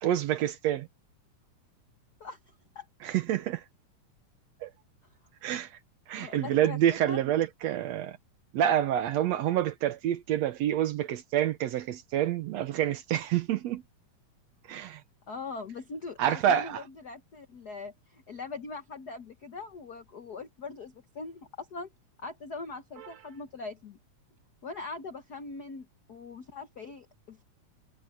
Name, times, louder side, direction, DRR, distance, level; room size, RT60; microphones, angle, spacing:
voice 1, 0.0-0.9 3.0-3.6 4.6-4.7 5.4-5.7 6.1-8.2 8.5-13.8 14.7-15.0 16.2-16.8, right 11 dB, 70° right, 1.8 m, -27 dB
voice 2, 6.2-7.2 15.3-21.9 22.2-24.0 24.6-27.4, left 4 dB, 85° left, 0.8 m, -41 dB
omnidirectional pair, 3.7 m